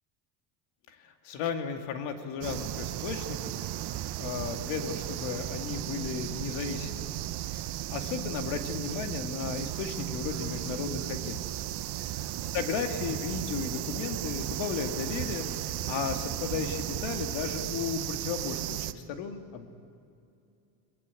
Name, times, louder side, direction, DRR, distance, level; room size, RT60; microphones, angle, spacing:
voice 1, 1.2-3.5 4.2-7.2 7.5-7.6 7.9-11.4 12.0-12.1 12.5-15.5 15.9-19.7, left 6 dB, 75° left, 5 dB, 2.5 m, -34 dB
sound 1, 2.4-18.9, right 14 dB, 60° right, 1.0 m, -35 dB
22.5 x 22.0 x 8.5 m, 2.5 s
cardioid pair, 135°, 45 cm